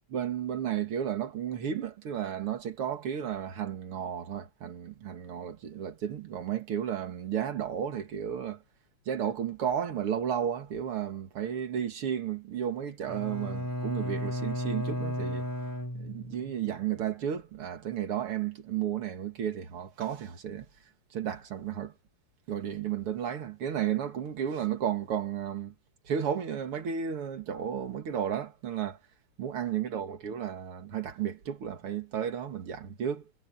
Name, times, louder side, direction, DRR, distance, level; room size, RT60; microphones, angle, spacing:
voice 1, 0.1-8.6 9.1-15.5 15.9-20.7 21.1-21.9 22.5-25.7 26.1-29.0 29.4-33.2, right 9 dB, 85° right, 2.8 m, -33 dB
Bowed string instrument, 13.1-16.6, equal, 10° left, 3.0 m, -34 dB
omnidirectional pair, 2.4 m